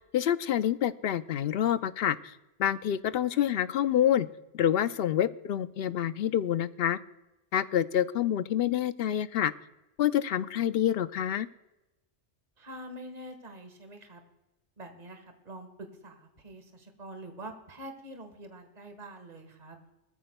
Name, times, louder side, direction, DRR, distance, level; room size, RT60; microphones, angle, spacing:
voice 1, 0.1-2.3 2.6-4.3 4.5-7.0 7.5-9.5 10.0-11.5, left 10 dB, 65° left, 14 dB, 0.7 m, -27 dB
voice 2, 12.6-14.2 14.8-19.8, right 1 dB, 35° right, 6 dB, 1.6 m, -45 dB
20.5 x 14.0 x 2.2 m, 0.98 s
omnidirectional pair, 1.2 m